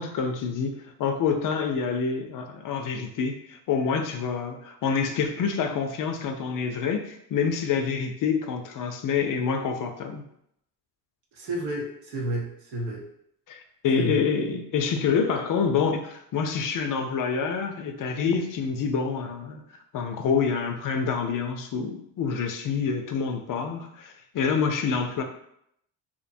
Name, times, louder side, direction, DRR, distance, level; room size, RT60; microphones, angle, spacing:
voice 1, 0.0-10.2 13.5-19.6 19.9-25.2, left 6 dB, 50° left, 6 dB, 0.5 m, -27 dB
voice 2, 11.3-13.1 14.0-14.3, right 1 dB, 90° right, -2 dB, 0.8 m, -31 dB
2.6 x 2.1 x 2.6 m, 0.73 s
cardioid pair, 80°, 43 cm